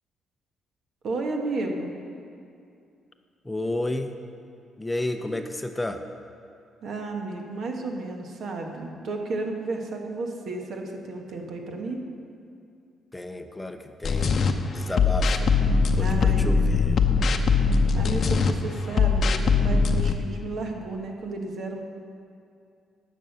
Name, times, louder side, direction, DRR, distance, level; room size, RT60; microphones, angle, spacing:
voice 1, 1.0-1.9 6.8-12.0 16.0-16.6 17.9-21.8, right 3 dB, 65° right, 2 dB, 1.4 m, -32 dB
voice 2, 3.4-4.2 4.8-6.0 13.1-14.4 14.7-15.5 15.9-17.0, left 1 dB, 15° left, 6 dB, 0.6 m, -31 dB
sound 1, 14.0-14.5 15.0-18.5 18.9-20.1, left 4 dB, 55° left, 0.7 m, -21 dB
11.0 x 6.5 x 6.7 m, 2.5 s
cardioid pair, 90°, 0 cm